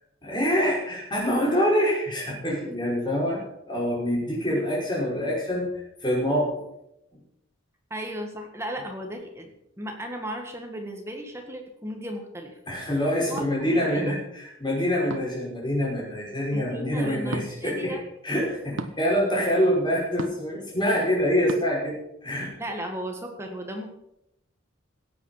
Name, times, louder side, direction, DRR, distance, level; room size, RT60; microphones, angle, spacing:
voice 1, 0.2-3.4 3.7-6.6 12.7-18.0 18.2-22.5, equal, 20° left, -4 dB, 5.4 m, -25 dB
voice 2, 7.9-9.5 9.8-12.6 13.3-14.1 16.5-18.0 22.6-23.9, equal, 15° right, 3 dB, 1.7 m, -35 dB
sound 1, 13.4-13.5 15.1-15.4 17.3-17.5 18.8-19.0 20.2-20.5 21.5-21.6, right 2 dB, 75° right, 1.0 m, -34 dB
16.5 x 8.5 x 5.7 m, 0.82 s
head